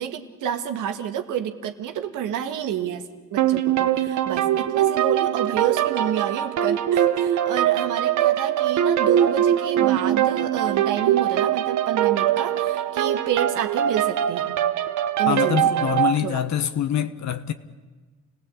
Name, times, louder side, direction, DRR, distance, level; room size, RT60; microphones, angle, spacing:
voice 1, 0.0-14.6 15.2-16.5, right 9 dB, 85° right, 1.8 m, -29 dB
sound 1, 3.4-16.2, right 11 dB, 70° right, 1.1 m, -22 dB
voice 2, 15.3-17.5, left 10 dB, 65° left, 1.4 m, -25 dB
29.0 x 17.5 x 8.5 m
cardioid pair, 90°, 30 cm